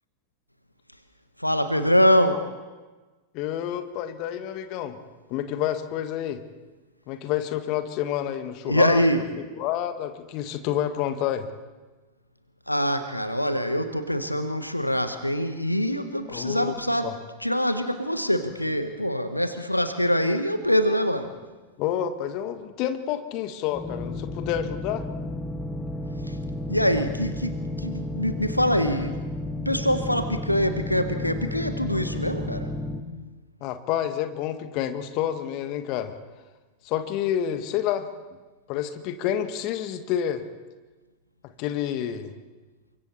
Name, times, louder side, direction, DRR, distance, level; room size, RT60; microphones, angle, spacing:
voice 1, 1.4-2.3 8.7-9.2 12.7-17.1 17.4-21.3 26.2-26.4 26.7-29.2 29.6-32.7, equal, 90° left, 9 dB, 1.3 m, -24 dB
voice 2, 3.3-5.0 5.3-6.4 7.1-9.0 9.5-11.5 16.3-16.8 17.0-17.2 21.8-25.0 33.6-36.1 36.8-38.1 38.7-40.4 41.4-42.3, left 10 dB, 40° left, 9 dB, 1.7 m, -29 dB
sound 1, 23.7-33.0, left 1 dB, 15° left, 1.9 m, -32 dB
29.5 x 24.5 x 4.4 m, 1.2 s
figure-of-eight pair, 90°, 0 cm